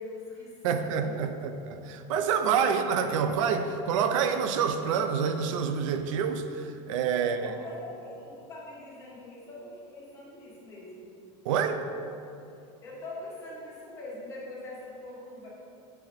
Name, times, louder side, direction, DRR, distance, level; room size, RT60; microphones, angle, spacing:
voice 1, 0.0-1.3 2.5-3.3 7.1-11.1 12.8-15.5, left 2 dB, 15° left, -7 dB, 1.6 m, -43 dB
voice 2, 0.6-6.4 6.9-7.5 11.5-11.9, right 7 dB, 80° right, 8 dB, 0.5 m, -27 dB
6.7 x 4.7 x 4.0 m, 2.6 s
supercardioid pair, 170°, 16 cm